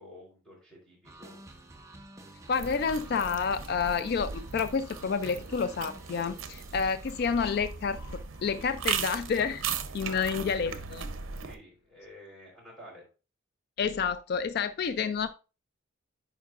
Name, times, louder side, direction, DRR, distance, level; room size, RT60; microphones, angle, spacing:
voice 1, 0.0-1.4 10.0-10.3 11.3-13.0, equal, 5° left, 3.6 m, -50 dB
sound 1, 1.0-9.1, right 1 dB, 15° right, 0.6 m, -51 dB
voice 2, 2.5-8.0 8.4-9.7 9.9-11.0 13.8-15.3, left 6 dB, 50° left, 0.3 m, -29 dB
sound 2, 2.5-11.5, right 6 dB, 80° right, 0.7 m, -38 dB
10.0 x 4.7 x 2.4 m
head